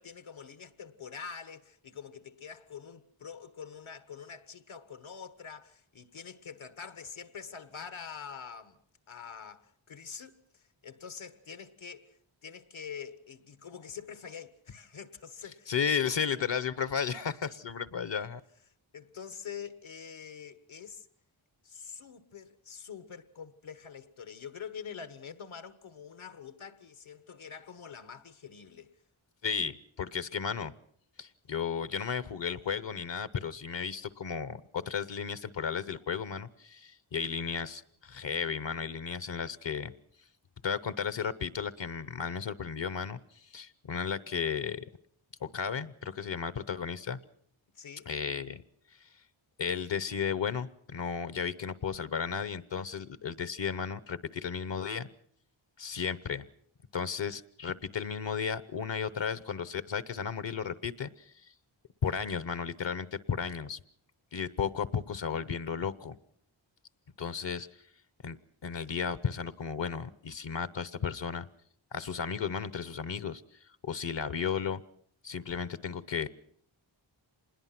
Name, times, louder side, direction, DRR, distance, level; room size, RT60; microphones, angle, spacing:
voice 1, 0.0-8.8 9.1-15.7 18.9-21.1 21.6-29.0 47.7-48.1, left 7 dB, 80° left, 1.5 m, -45 dB
voice 2, 15.7-18.4 29.4-30.7 31.2-39.9 40.6-44.8 45.4-47.2 48.1-48.6 49.0-49.1 49.6-55.1 55.8-56.4 56.9-61.5 62.0-63.8 64.3-66.2 67.2-67.7 68.2-68.4 68.6-71.5 71.9-73.4 73.8-74.8 75.2-76.3, left 6 dB, 65° left, 1.0 m, -34 dB
26.5 x 21.0 x 5.9 m
wide cardioid pair, 100°, 48 cm